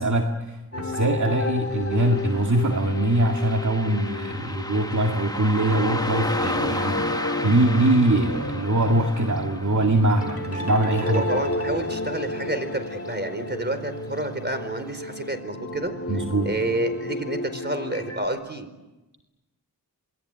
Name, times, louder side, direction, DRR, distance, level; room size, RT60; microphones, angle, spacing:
voice 1, 0.0-7.1 7.4-11.2 16.1-16.5, right 1 dB, 50° right, 2 dB, 2.2 m, -22 dB
sound 1, 0.7-18.3, left 2 dB, 35° left, 2.3 m, -32 dB
Car passing by, 1.9-12.8 13.0-13.1 14.1-14.3 14.7-14.8 15.3-15.4, left 1 dB, 10° left, 1.3 m, -35 dB
voice 2, 11.0-15.9 16.4-18.7, right 1 dB, 25° right, 9 dB, 4.6 m, -29 dB
28.0 x 21.5 x 9.3 m, 1.1 s
wide cardioid pair, 50°, 38 cm